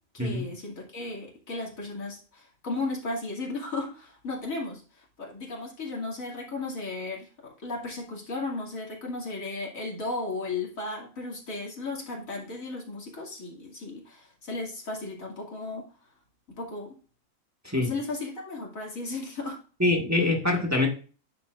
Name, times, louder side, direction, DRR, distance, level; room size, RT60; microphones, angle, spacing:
voice 1, 0.1-15.9 16.6-17.0 17.7-19.6, left 3 dB, 90° left, -2 dB, 2.9 m, -35 dB
voice 2, 19.8-20.9, left 2 dB, 10° right, 0 dB, 1.5 m, -24 dB
10.0 x 7.1 x 2.5 m, 0.37 s
omnidirectional pair, 1.4 m